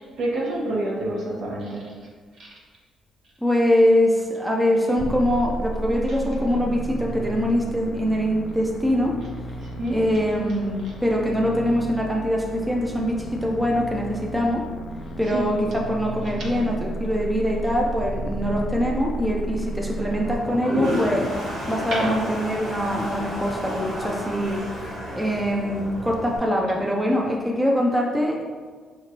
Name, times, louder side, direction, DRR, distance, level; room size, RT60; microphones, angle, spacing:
voice 1, 0.2-1.8 2.4-2.5 9.6-10.0 15.3-15.4 21.9-22.1, right 1 dB, 70° right, -3 dB, 1.1 m, -27 dB
voice 2, 3.4-9.2 9.9-14.6 15.2-21.3 21.7-24.6 25.1-28.4, equal, 5° right, -1 dB, 0.5 m, -23 dB
sound 1, 5.0-20.3, right 1 dB, 55° left, 0.3 m, -33 dB
Toilet flush, 20.2-26.4, equal, 85° right, 1.4 m, -31 dB
4.9 x 3.1 x 2.8 m, 1.5 s
cardioid pair, 90°, 0 cm